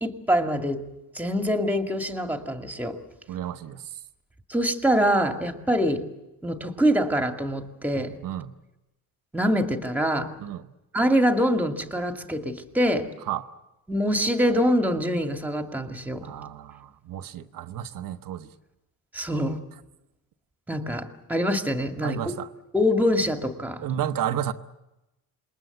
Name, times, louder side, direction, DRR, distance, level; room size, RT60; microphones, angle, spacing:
voice 1, 0.0-0.8 1.1-3.0 4.5-6.0 6.4-8.1 9.3-10.3 10.9-13.1 13.9-16.2 19.1-19.6 20.7-22.3 22.7-23.8, equal, 5° right, 6 dB, 2.1 m, -24 dB
voice 2, 3.3-4.0 8.2-8.5 10.4-10.7 13.3-13.5 16.2-18.5 22.0-22.5 23.8-24.5, right 10 dB, 60° right, 8 dB, 1.1 m, -32 dB
27.5 x 21.5 x 7.9 m, 0.97 s
cardioid pair, 135°, 37 cm